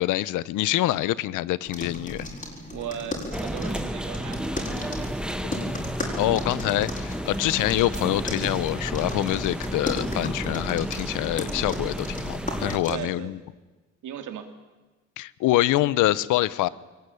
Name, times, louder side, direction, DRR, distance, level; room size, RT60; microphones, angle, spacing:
voice 1, 0.0-2.2 6.2-13.4 15.2-16.7, left 16 dB, 90° left, 20 dB, 0.8 m, -25 dB
sound 1, 1.6-12.9, left 2 dB, 25° left, 6.8 m, -36 dB
voice 2, 2.7-5.1 7.5-7.7 12.9-13.3 14.0-14.5, right 9 dB, 75° right, 7 dB, 2.9 m, -37 dB
sound 2, 3.3-12.8, right 1 dB, 5° right, 1.5 m, -32 dB
22.5 x 19.0 x 10.0 m, 1.2 s
cardioid pair, 90°, 30 cm